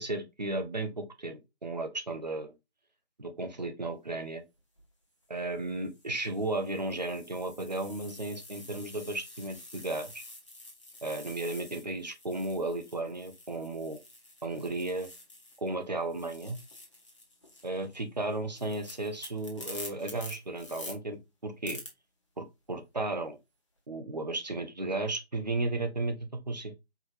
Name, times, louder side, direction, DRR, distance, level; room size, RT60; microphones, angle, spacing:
voice 1, 0.0-2.5 3.2-4.4 5.3-10.2 11.0-14.0 14.4-15.1 15.6-16.6 17.6-21.8 22.4-23.4 23.9-26.2 26.5-26.7, right 2 dB, 40° right, 0.7 m, -34 dB
sound 1, 4.6-4.8 5.6-15.7 16.0-20.9 21.6-21.9, left 2 dB, 30° left, 0.9 m, -48 dB
4.7 x 3.2 x 2.6 m
figure-of-eight pair, 160°, 33 cm